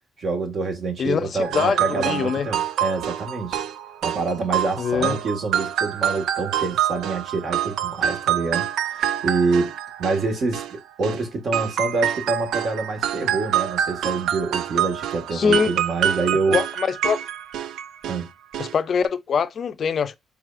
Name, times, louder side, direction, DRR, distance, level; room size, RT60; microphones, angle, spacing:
voice 1, 0.2-3.6 4.0-9.7 10.0-16.6 18.0-18.3, right 3 dB, 55° right, 1.7 m, -26 dB
voice 2, 1.0-2.5 4.8-5.2 15.3-15.7 16.5-17.2 18.6-20.2, left 6 dB, 55° left, 0.5 m, -23 dB
sound 1, 1.4-11.2 11.5-18.2 18.5-18.7 19.0-19.1, right 10 dB, 80° right, 0.4 m, -26 dB
4.8 x 3.4 x 2.5 m
cardioid pair, 90°, 0 cm